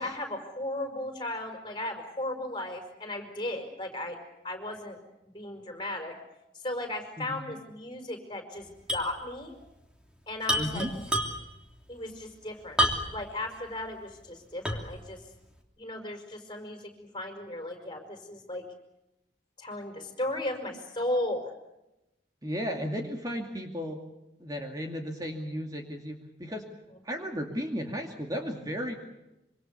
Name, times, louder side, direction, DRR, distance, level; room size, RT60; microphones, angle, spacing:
voice 1, 0.0-4.2 4.4-5.0 5.2-6.1 6.6-9.5 10.3-10.9 11.9-12.8 13.1-15.2 15.8-16.8 17.1-18.6 19.6-21.5, left 1 dB, 25° left, 4 dB, 5.2 m, -35 dB
sound 1, 8.9-9.1 9.4-9.5 10.4-11.6 12.8-13.3 13.8-13.9 14.6-15.0, equal, 5° right, 3.1 m, -28 dB
voice 2, 10.6-11.0 22.4-24.0 24.4-26.7 27.0-28.9, equal, 20° right, 3 dB, 2.4 m, -34 dB
26.5 x 25.0 x 6.9 m, 0.92 s
head